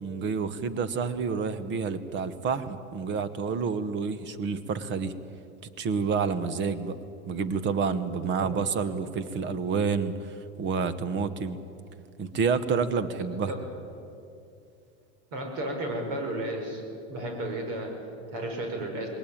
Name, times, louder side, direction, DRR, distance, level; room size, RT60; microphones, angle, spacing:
voice 1, 0.0-5.1 5.8-7.0 7.3-11.6 12.2-13.5, right 5 dB, 35° right, 13 dB, 1.3 m, -29 dB
voice 2, 15.3-16.8 17.1-19.1, right 1 dB, 60° right, 3 dB, 5.6 m, -33 dB
20.5 x 18.5 x 8.8 m, 2.6 s
supercardioid pair, 130°, 34 cm